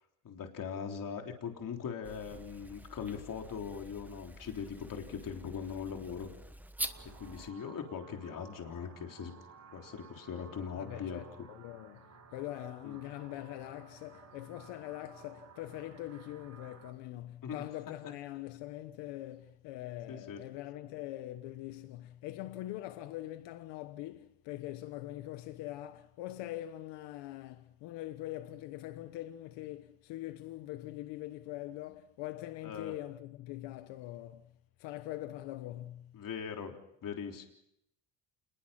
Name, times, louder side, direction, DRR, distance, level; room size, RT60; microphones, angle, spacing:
voice 1, 0.2-6.3 7.2-9.3 9.7-11.2 12.8-13.0 17.4-17.6 20.1-20.4 32.6-32.9 36.1-37.5, left 7 dB, 50° left, 3.7 m, -40 dB
sound 1, 2.0-7.5, right 1 dB, 5° right, 1.3 m, -46 dB
sound 2, 6.8-16.9, right 5 dB, 40° right, 7.0 m, -56 dB
voice 2, 10.8-34.5 34.8-36.2, left 15 dB, 85° left, 1.3 m, -43 dB
28.0 x 21.5 x 5.9 m
cardioid pair, 100°, 42 cm